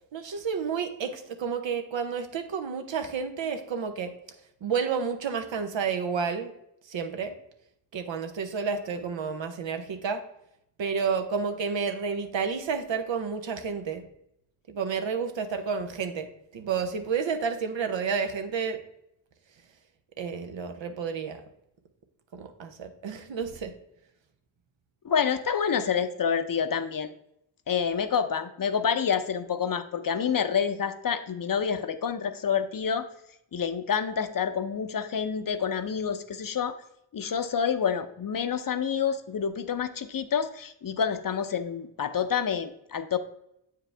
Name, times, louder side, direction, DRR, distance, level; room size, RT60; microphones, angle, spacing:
voice 1, 0.1-4.1 4.6-6.5 6.9-7.3 7.9-10.2 10.8-14.0 14.7-16.3 16.5-18.8 20.2-21.4 22.3-23.7, right 6 dB, 85° right, 7 dB, 0.9 m, -30 dB
voice 2, 25.0-27.1 27.7-33.1 33.5-36.7 37.1-43.2, left 7 dB, 50° left, 10 dB, 0.7 m, -28 dB
7.8 x 4.8 x 3.3 m, 0.79 s
cardioid pair, 55°, 44 cm